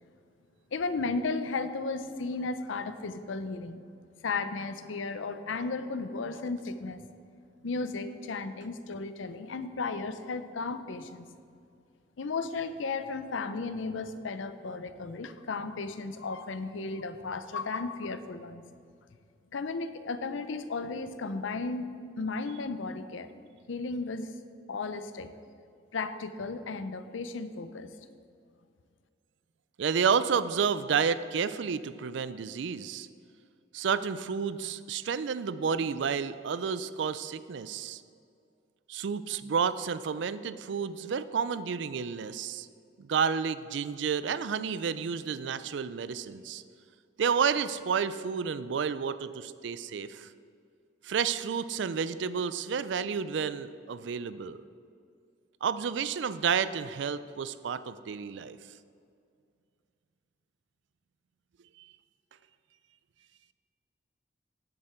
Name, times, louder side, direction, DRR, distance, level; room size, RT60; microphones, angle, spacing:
voice 1, 0.7-3.8 4.2-7.0 7.6-11.3 12.2-18.6 19.5-21.9 22.2-23.3 23.7-24.3 24.7-25.3 25.9-27.9, left 3 dB, 80° left, 11 dB, 0.6 m, -34 dB
voice 2, 29.8-33.1 33.7-38.0 38.9-42.7 43.0-46.6 47.2-50.3 51.0-54.6 55.6-58.6, right 6 dB, 70° right, 14 dB, 0.4 m, -30 dB
10.5 x 7.8 x 4.4 m, 2.3 s
head